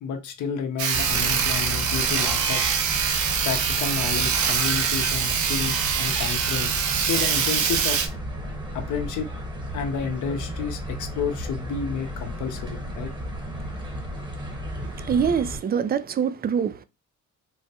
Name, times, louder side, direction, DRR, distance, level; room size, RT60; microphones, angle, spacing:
voice 1, 0.0-2.6 3.4-8.0 8.7-9.3 9.7-13.1, left 6 dB, 75° left, 0.7 m, -31 dB
Sawing, 0.8-8.1, right 7 dB, 75° right, 0.7 m, -24 dB
sound 1, 0.9-15.6, equal, 15° right, 1.0 m, -34 dB
voice 2, 14.8-16.8, right 7 dB, 30° right, 0.4 m, -25 dB
3.9 x 2.1 x 2.7 m
cardioid pair, 90°, 30 cm